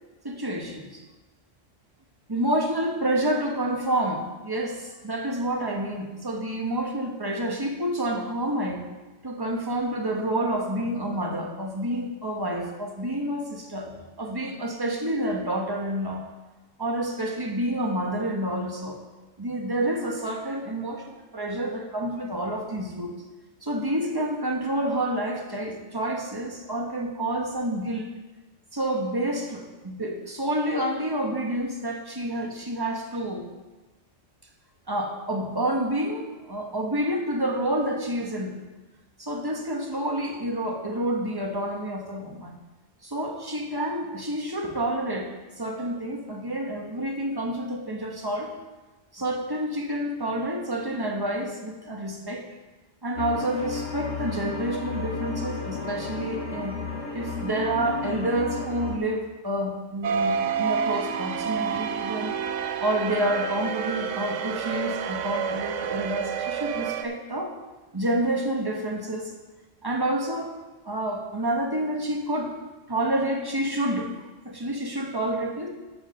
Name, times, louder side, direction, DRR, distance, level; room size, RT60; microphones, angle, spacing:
voice 1, 0.2-1.0 2.3-8.9 9.2-16.3 16.8-19.0 19.4-23.1 23.6-28.1 28.7-33.5 34.9-38.6 39.2-42.6 43.0-48.5 49.1-52.5 53.0-56.8 57.1-62.4 62.8-67.6 67.9-69.3 69.8-70.5 70.8-72.5 72.9-74.1 74.4-75.7, right 1 dB, 20° right, 1 dB, 1.3 m, -28 dB
sound 1, 53.2-59.0, left 4 dB, 80° left, 1.7 m, -33 dB
sound 2, 60.0-67.0, right 7 dB, 80° right, 1.0 m, -29 dB
12.0 x 5.0 x 6.6 m, 1.2 s
omnidirectional pair, 1.3 m